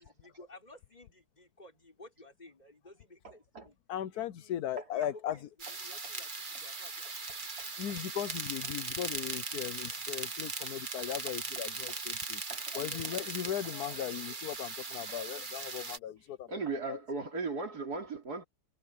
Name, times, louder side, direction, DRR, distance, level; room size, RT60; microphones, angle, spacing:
voice 1, 0.0-3.8 4.1-7.4, left 2 dB, 25° left, 5.5 m, -55 dB
voice 2, 3.2-3.7 12.5-12.7 16.5-18.4, right 3 dB, 75° right, 4.0 m, -37 dB
voice 3, 3.9-5.4 7.8-12.4 12.7-16.5 16.9-17.0, left 11 dB, 75° left, 1.3 m, -37 dB
sound 1, 5.6-16.0, right 4 dB, 30° right, 1.6 m, -39 dB
omnidirectional pair, 1.7 m